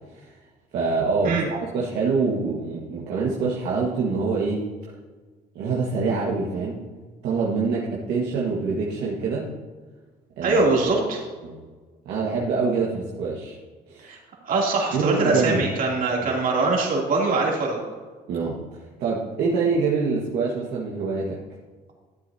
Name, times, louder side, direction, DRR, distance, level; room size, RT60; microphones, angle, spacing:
voice 1, 0.7-4.7 5.5-6.9 7.2-9.5 10.4-10.6 11.4-11.6 12.0-13.6 13.9-14.1 14.9-15.6 16.2-16.4 18.3-21.4, right 4 dB, 75° right, -4 dB, 1.6 m, -25 dB
voice 2, 10.4-11.2 14.0-14.2 14.4-17.8, right 3 dB, 55° right, -2 dB, 3.0 m, -22 dB
13.0 x 7.9 x 2.8 m, 1.4 s
cardioid pair, 110°, 17 cm